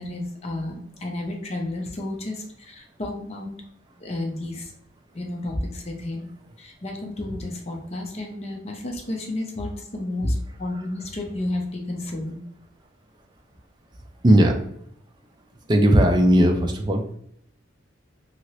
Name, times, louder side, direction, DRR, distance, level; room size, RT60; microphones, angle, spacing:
voice 1, 0.0-3.5 4.0-4.7 5.1-6.3 6.6-12.4, left 1 dB, 30° left, 1 dB, 0.6 m, -31 dB
voice 2, 14.2-14.6 15.7-17.1, right 1 dB, 20° right, 3 dB, 0.4 m, -17 dB
2.9 x 2.8 x 2.9 m, 0.70 s
head